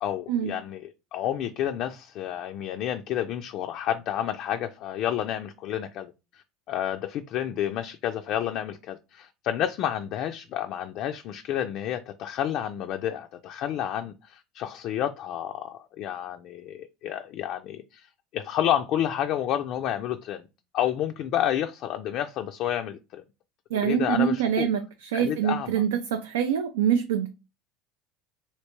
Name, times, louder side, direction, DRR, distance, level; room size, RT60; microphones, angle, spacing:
voice 1, 0.0-18.1 18.3-20.5 20.7-23.2 23.8-24.7 25.1-25.8, left 11 dB, 55° left, 0.3 m, -30 dB
voice 2, 23.7-27.3, right 9 dB, 80° right, 0.3 m, -25 dB
3.2 x 2.7 x 2.9 m
hypercardioid pair, 75°, 0 cm